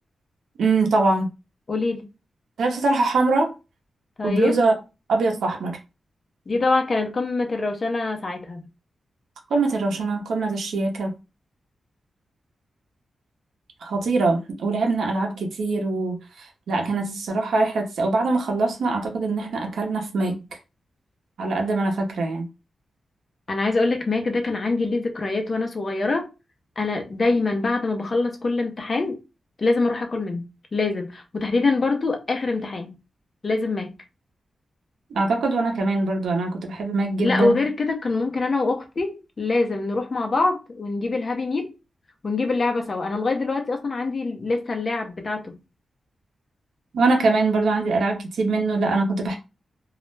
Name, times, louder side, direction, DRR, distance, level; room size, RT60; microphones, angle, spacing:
voice 1, 0.6-1.3 2.6-3.5 4.2-4.8 5.1-5.8 9.5-11.1 13.8-20.4 21.4-22.5 35.1-37.7 46.9-49.4, right 3 dB, 90° right, 0.6 m, -23 dB
voice 2, 1.7-2.1 4.2-4.6 6.5-8.6 23.5-26.3 26.8-29.2 29.6-30.4 30.7-32.9 33.4-33.9 37.2-41.7 42.2-45.5, left 3 dB, 45° left, 0.6 m, -24 dB
2.3 x 2.0 x 3.2 m
cardioid pair, 90°, 0 cm